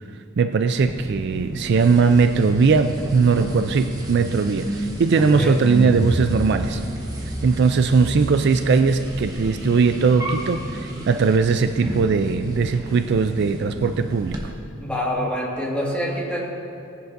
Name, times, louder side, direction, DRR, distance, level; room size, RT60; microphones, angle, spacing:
voice 1, 0.4-6.8 7.2-14.5, right 5 dB, 55° right, 9 dB, 0.4 m, -19 dB
sound 1, 0.8-14.4, right 1 dB, 20° right, 1.2 m, -31 dB
voice 2, 5.2-5.6 14.8-16.4, equal, 5° left, -5 dB, 1.9 m, -26 dB
18.0 x 10.5 x 2.6 m, 2.5 s
head